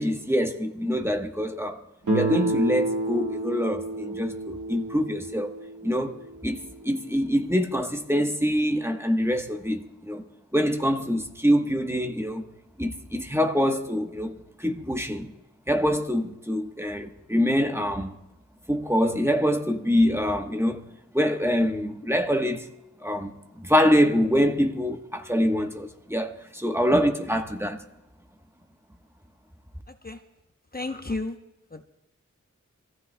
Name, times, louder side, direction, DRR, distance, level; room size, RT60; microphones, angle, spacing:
voice 1, 0.0-1.8 2.1-5.5 5.8-6.2 6.4-10.2 10.5-12.4 12.8-15.3 15.7-18.1 18.7-20.8 21.1-22.7 23.0-27.8, equal, 10° right, 1.1 m, -25 dB
Guitar, 2.1-6.9, right 1 dB, 90° right, 1.9 m, -30 dB
voice 2, 30.7-31.4 31.7-31.8, left 2 dB, 30° left, 0.8 m, -32 dB
26.5 x 15.0 x 2.2 m
wide cardioid pair, 40°, 30 cm